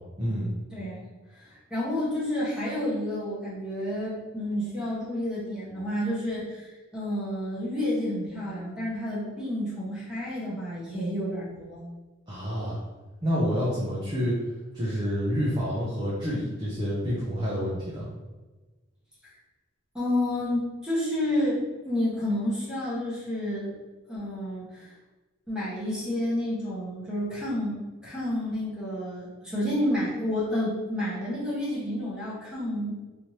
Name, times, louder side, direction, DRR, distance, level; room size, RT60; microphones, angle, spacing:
voice 1, 0.2-0.5 12.3-12.8 13.2-14.3 14.7-18.1, equal, 20° right, -7 dB, 0.6 m, -28 dB
voice 2, 0.7-1.1 1.3-11.8 19.9-23.7 24.1-24.9 25.5-32.9, left 1 dB, 5° right, -8 dB, 1.2 m, -30 dB
3.2 x 2.8 x 3.0 m, 1.2 s
head